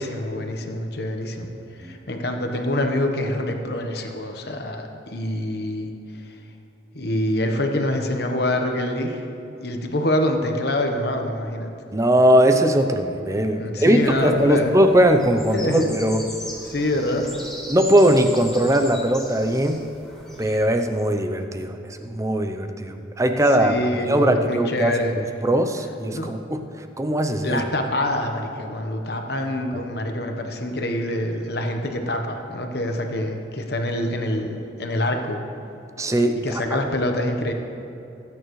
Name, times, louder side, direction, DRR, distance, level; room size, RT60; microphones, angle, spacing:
voice 1, 0.0-1.5 1.8-5.9 6.9-9.2 9.6-11.7 13.5-14.8 15.5-15.9 16.7-17.3 23.6-25.1 26.1-26.3 27.4-35.4 36.4-37.5, left 1 dB, 55° left, 4 dB, 1.0 m, -25 dB
voice 2, 11.9-16.3 17.7-19.8 20.4-23.8 24.1-26.6 27.0-27.6 36.0-36.4 36.7-36.8, right 1 dB, 15° right, 6 dB, 0.5 m, -20 dB
sound 1, 14.0-20.6, equal, 5° left, 1.7 m, -39 dB
20.0 x 9.1 x 3.1 m, 2.8 s
head